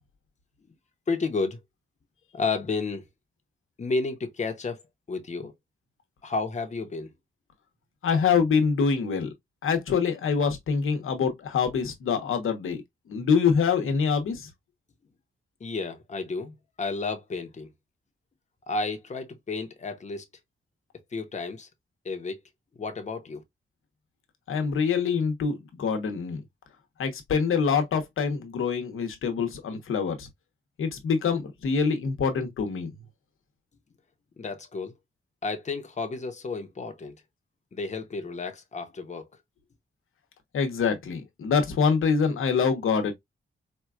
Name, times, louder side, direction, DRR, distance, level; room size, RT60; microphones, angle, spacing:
voice 1, 1.1-1.6 2.3-3.1 3.8-4.8 5.1-5.5 6.2-7.1 15.6-17.7 18.7-20.3 21.1-21.7 22.0-22.4 22.7-23.4 34.4-34.9 35.4-37.2 37.7-39.3, left 3 dB, 35° left, 0.8 m, -31 dB
voice 2, 8.0-9.3 9.6-12.8 13.1-14.5 24.5-26.4 27.0-30.3 30.8-32.9 40.5-43.1, left 6 dB, 90° left, 0.9 m, -25 dB
4.4 x 2.3 x 2.3 m
cardioid pair, 95°, 21 cm